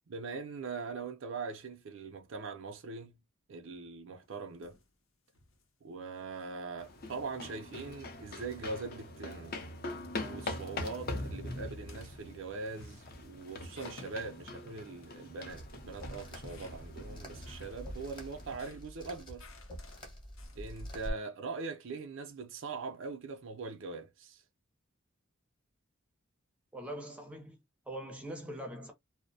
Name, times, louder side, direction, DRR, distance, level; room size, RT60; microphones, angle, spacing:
voice 1, 0.1-3.2 3.5-4.8 5.8-9.6 10.2-19.5 20.6-24.4, right 4 dB, 70° right, 0.4 m, -42 dB
sound 1, 4.2-4.9 5.3-5.7 6.2-6.6 7.0-9.1 9.5-9.8 10.3-10.7 11.0-11.4 11.8-12.3 12.7-15.2 15.5-17.1 17.5-21.1, left 4 dB, 85° left, 0.7 m, -60 dB
sound 2, 6.8-18.6, left 2 dB, 45° left, 0.5 m, -43 dB
sound 3, 15.5-21.1, equal, 25° left, 0.8 m, -46 dB
voice 2, 26.7-27.6 27.9-28.9, right 1 dB, 5° right, 0.5 m, -42 dB
2.5 x 2.0 x 2.6 m
head